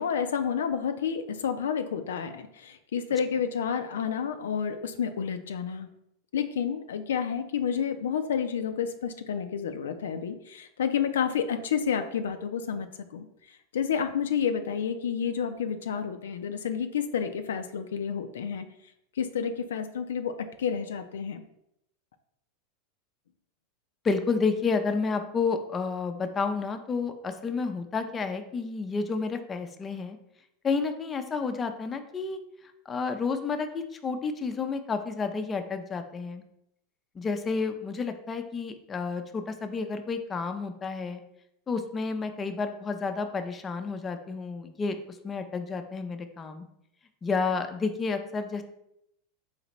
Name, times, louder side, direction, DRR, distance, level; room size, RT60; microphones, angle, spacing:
voice 1, 0.0-5.9 6.3-12.9 13.1-13.3 13.7-18.7 19.2-21.4, left 7 dB, 85° left, 8 dB, 0.3 m, -30 dB
voice 2, 24.0-30.2 30.6-32.4 32.9-36.4 37.2-41.2 41.7-45.0 45.2-46.7 47.2-48.6, left 4 dB, 25° left, 7 dB, 0.4 m, -30 dB
4.0 x 3.2 x 2.9 m, 0.79 s
hypercardioid pair, 110°, 0 cm